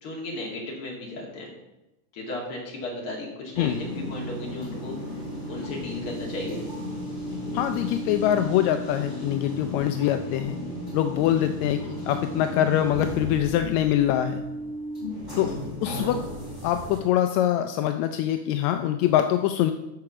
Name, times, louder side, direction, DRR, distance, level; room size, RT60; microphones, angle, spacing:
voice 1, 0.0-1.5 2.1-5.0 5.5-6.6 11.2-11.5 15.8-16.0, left 2 dB, 45° left, -1 dB, 2.8 m, -35 dB
sound 1, 3.5-17.0, left 1 dB, 5° left, 3.0 m, -34 dB
voice 2, 7.5-10.6 10.9-11.8 12.1-14.4 15.4-15.5 15.8-16.2 16.6-19.7, left 11 dB, 80° left, 8 dB, 1.7 m, -24 dB
12.5 x 4.8 x 5.9 m, 0.98 s
omnidirectional pair, 3.6 m